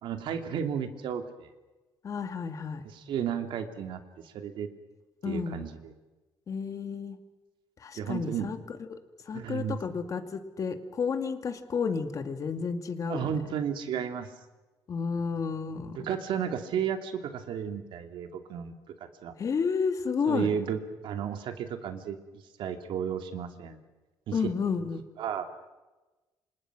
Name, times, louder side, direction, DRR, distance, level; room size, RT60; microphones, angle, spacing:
voice 1, 0.0-1.5 2.9-4.7 5.2-5.9 7.9-8.5 9.3-9.8 13.1-14.3 15.9-18.9 19.2-19.3 20.3-22.2 22.6-23.8 24.3-24.5 25.2-25.5, right 8 dB, 75° right, 7 dB, 2.7 m, -33 dB
voice 2, 2.0-2.8 5.2-5.6 6.5-7.2 7.8-8.6 8.9-9.0 9.3-13.4 14.9-16.1 19.4-20.5 24.3-25.0, left 5 dB, 40° left, 8 dB, 2.3 m, -31 dB
29.0 x 26.5 x 6.2 m, 1.1 s
cardioid pair, 145°, 8 cm